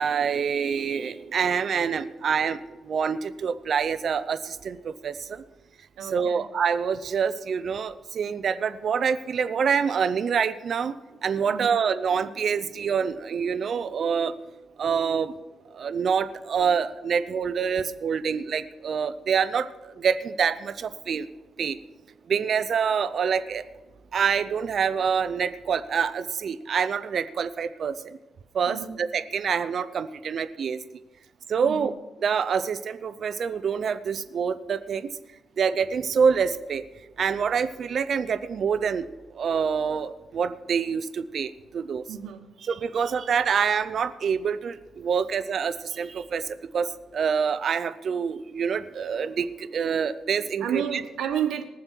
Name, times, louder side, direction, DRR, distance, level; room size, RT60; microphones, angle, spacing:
voice 1, 0.0-5.4 6.0-11.0 11.2-14.3 14.8-15.3 15.7-21.3 21.6-21.8 22.3-23.6 24.1-28.2 28.5-30.8 31.5-31.9 32.2-35.1 35.6-36.9 37.2-39.1 39.3-42.0 42.6-51.0, right 6 dB, 55° right, 13 dB, 0.7 m, -26 dB
voice 2, 6.0-6.4 11.5-11.8 28.7-29.0 31.6-31.9 42.1-42.5 50.6-51.6, right 8 dB, 85° right, 3 dB, 1.4 m, -31 dB
20.5 x 7.3 x 4.6 m, 1.1 s
cardioid pair, 110°, 0 cm